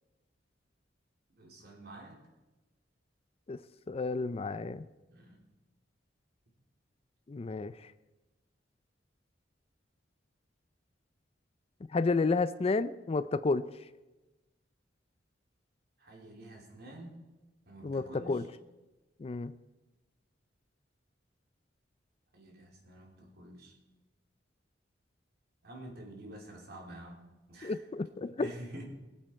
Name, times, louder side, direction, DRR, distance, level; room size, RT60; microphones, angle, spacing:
voice 1, 1.3-2.2 5.1-5.4 16.0-17.2 17.7-18.5 22.3-23.7 25.6-27.8 28.2-28.9, right 1 dB, 60° right, 0 dB, 3.1 m, -48 dB
voice 2, 3.9-4.9 7.3-7.9 11.9-13.7 17.8-18.4 19.2-19.5 27.6-28.5, left 3 dB, 35° left, 14 dB, 0.4 m, -31 dB
21.5 x 8.1 x 4.4 m, 1.1 s
head